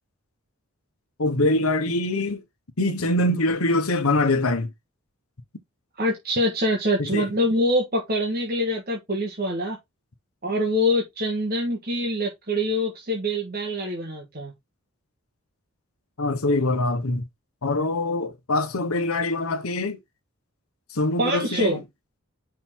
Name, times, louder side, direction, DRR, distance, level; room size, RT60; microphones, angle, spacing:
voice 1, 1.2-2.4 2.8-4.7 7.0-7.3 16.2-17.3 17.6-20.0 20.9-21.8, left 2 dB, 85° left, 1.1 m, -24 dB
voice 2, 6.0-9.8 10.4-14.5 21.2-21.8, equal, 45° right, 1.5 m, -25 dB
5.8 x 3.8 x 4.5 m
head